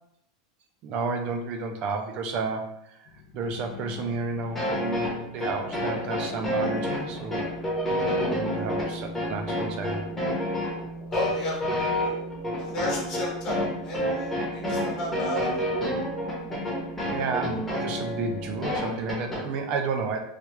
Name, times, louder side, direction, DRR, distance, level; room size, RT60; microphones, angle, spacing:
voice 1, 0.8-3.1 3.3-7.5 8.3-10.0 17.1-20.2, right 4 dB, 35° right, 4 dB, 0.4 m, -31 dB
sound 1, 3.1-18.6, equal, 60° left, 0.4 m, -42 dB
sound 2, 4.6-19.4, equal, 10° left, 0.8 m, -29 dB
voice 2, 11.1-11.6 12.0-12.1 12.6-13.6 13.8-15.5, left 2 dB, 35° left, -3 dB, 1.0 m, -32 dB
3.2 x 2.3 x 3.0 m, 0.78 s
supercardioid pair, 165°, 3 cm